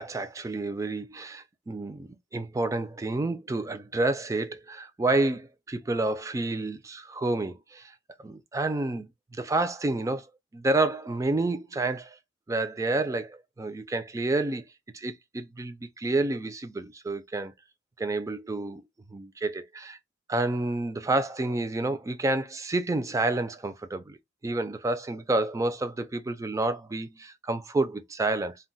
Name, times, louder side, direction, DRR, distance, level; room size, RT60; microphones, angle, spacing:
voice 1, 0.0-7.9 8.2-10.3 10.5-12.2 12.5-14.6 14.9-17.5 18.0-18.8 19.1-20.0 20.3-24.2 24.4-28.6, right 2 dB, 15° right, 0.3 m, -29 dB
2.3 x 2.0 x 3.7 m
head